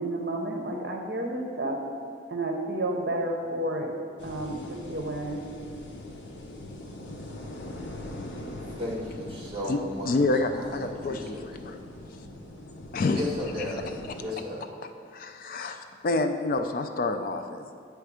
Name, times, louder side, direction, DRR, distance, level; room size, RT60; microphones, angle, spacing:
voice 1, 0.0-1.8 2.3-4.0 4.2-5.4, right 1 dB, 60° right, 1 dB, 0.7 m, -31 dB
sound 1, 4.2-14.2, left 1 dB, 70° left, 0.8 m, -42 dB
voice 2, 8.8-10.2 10.6-11.6 13.1-13.8 14.2-14.6, left 1 dB, 25° right, -4 dB, 1.3 m, -34 dB
voice 3, 10.0-11.8 12.9-13.2 15.1-17.8, left 2 dB, 45° left, 7 dB, 0.3 m, -28 dB
8.9 x 3.4 x 4.9 m, 2.3 s
head